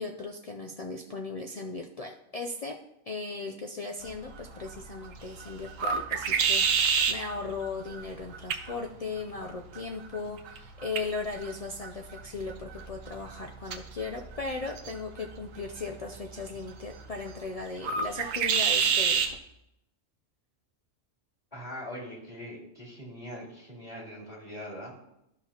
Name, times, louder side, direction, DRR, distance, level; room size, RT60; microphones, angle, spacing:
voice 1, 0.0-2.7 3.1-19.4, left 3 dB, 70° left, 2 dB, 0.3 m, -37 dB
sound 1, 4.0-19.4, right 6 dB, 90° right, 1.1 m, -32 dB
voice 2, 21.5-25.0, equal, 30° left, -4 dB, 2.3 m, -42 dB
12.5 x 5.9 x 2.8 m, 0.83 s
omnidirectional pair, 1.3 m